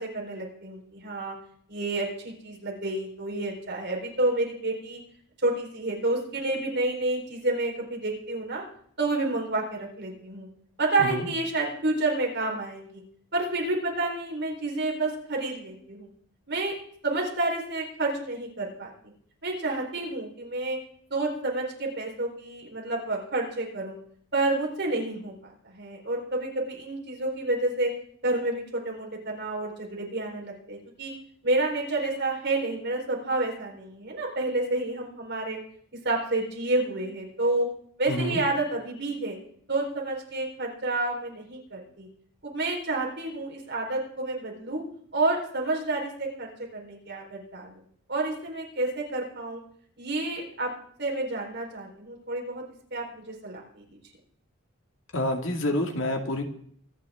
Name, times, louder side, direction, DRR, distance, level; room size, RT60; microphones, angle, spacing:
voice 1, 0.0-1.4 1.7-5.0 5.4-8.6 9.0-10.5 10.8-13.0 13.3-16.1 16.5-16.7 17.0-18.9 19.4-20.8 21.1-24.0 24.3-25.3 25.7-27.9 28.2-31.1 31.4-35.6 36.0-37.7 38.0-39.4 39.7-42.1 42.4-44.8 45.1-47.8 48.1-49.6 50.0-50.7 51.0-52.6 52.9-53.8, right 2 dB, 55° right, -1 dB, 4.3 m, -29 dB
voice 2, 38.1-38.4 55.1-56.4, left 1 dB, 65° left, 3 dB, 2.3 m, -28 dB
25.0 x 10.0 x 3.7 m, 0.62 s
head